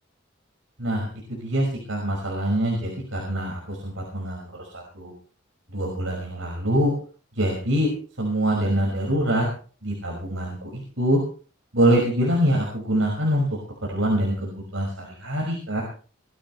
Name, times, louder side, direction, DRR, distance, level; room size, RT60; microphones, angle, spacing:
voice 1, 0.8-5.1 5.7-6.9 7.4-7.9 8.2-9.5 9.8-11.2 11.7-13.5 13.8-15.8, equal, 80° right, -1 dB, 5.8 m, -24 dB
21.0 x 16.0 x 3.3 m, 0.40 s
head